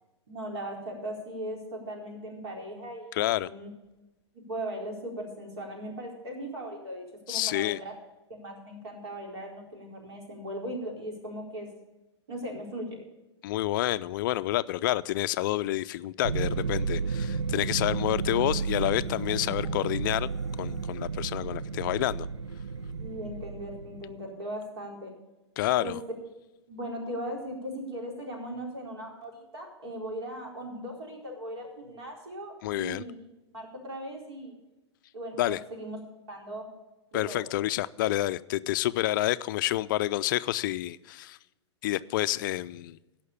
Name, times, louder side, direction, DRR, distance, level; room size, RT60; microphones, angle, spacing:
voice 1, 0.3-3.7 4.3-7.9 8.3-11.7 12.3-12.9 23.0-25.1 25.8-26.0 26.7-33.2 33.5-34.5 35.1-36.0 36.3-36.7 37.1-37.4, right 1 dB, 65° right, 0 dB, 4.4 m, -38 dB
voice 2, 3.1-3.5 7.3-7.8 13.4-20.3 20.6-22.3 25.6-26.0 32.6-33.0 35.4-35.6 37.1-41.4 41.8-43.0, left 15 dB, 45° left, 15 dB, 0.4 m, -28 dB
sound 1, 16.2-24.1, right 5 dB, 85° right, 0.4 m, -32 dB
Marimba xylophone, 18.2-21.1, left 3 dB, 5° right, 1.6 m, -49 dB
16.0 x 5.8 x 7.0 m, 1.0 s
figure-of-eight pair, 110°, 15 cm